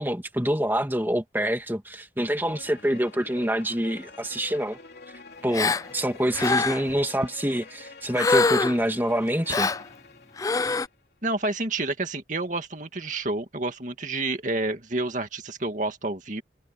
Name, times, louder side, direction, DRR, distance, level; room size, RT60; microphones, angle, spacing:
voice 1, 0.0-4.8 5.4-9.7, equal, 10° right, 2.1 m, -26 dB
sound 1, 2.4-10.9, left 3 dB, 65° left, 3.2 m, -46 dB
Gasp, 5.5-5.9 6.3-6.9 8.2-8.9 9.5-9.8 10.4-10.9, left 3 dB, 20° left, 0.3 m, -24 dB
voice 2, 11.2-16.4, right 2 dB, 45° right, 2.3 m, -29 dB
head